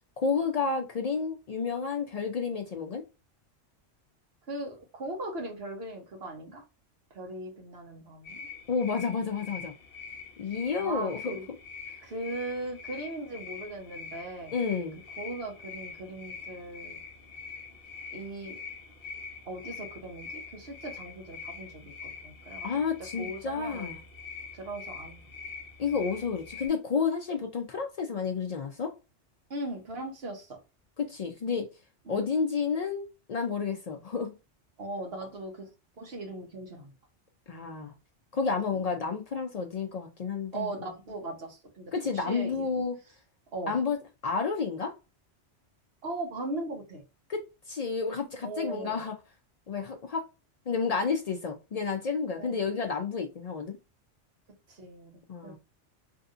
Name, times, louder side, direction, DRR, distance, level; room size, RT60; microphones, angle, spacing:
voice 1, 0.2-3.0 8.7-9.7 10.4-11.4 14.5-15.0 22.6-24.0 25.8-28.9 31.0-31.7 32.1-34.4 37.5-37.9 38.3-40.9 41.9-43.0 43.7-44.0 44.2-44.9 47.3-49.1 49.7-50.3 50.7-53.8 55.3-55.6, left 5 dB, 70° left, 4 dB, 0.3 m, -30 dB
voice 2, 4.5-6.6 7.1-8.4 10.8-11.5 12.0-14.5 15.2-17.0 18.1-18.6 19.5-22.7 23.2-23.9 24.5-25.2 29.5-30.6 32.1-32.3 34.8-35.7 36.0-36.9 38.8-38.9 40.5-42.8 43.5-43.7 46.0-47.0 48.4-49.0 52.4-52.6 54.7-55.6, right 2 dB, 55° right, 1 dB, 1.2 m, -39 dB
sound 1, 8.2-26.7, left 5 dB, 55° left, 1.0 m, -44 dB
3.4 x 2.7 x 2.4 m, 0.29 s
omnidirectional pair, 1.2 m